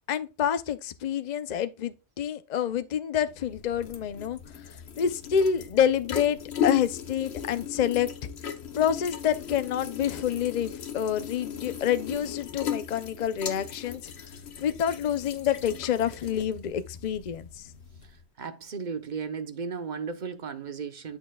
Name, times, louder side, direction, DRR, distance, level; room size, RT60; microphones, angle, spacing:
voice 1, 0.1-4.4 5.0-8.1 8.7-14.1 14.6-17.7, left 9 dB, 50° left, 0.7 m, -27 dB
sound 1, 3.2-18.2, left 8 dB, 80° left, 1.2 m, -37 dB
voice 2, 18.4-21.2, right 5 dB, 50° right, 0.9 m, -35 dB
8.9 x 6.0 x 2.3 m
omnidirectional pair, 1.1 m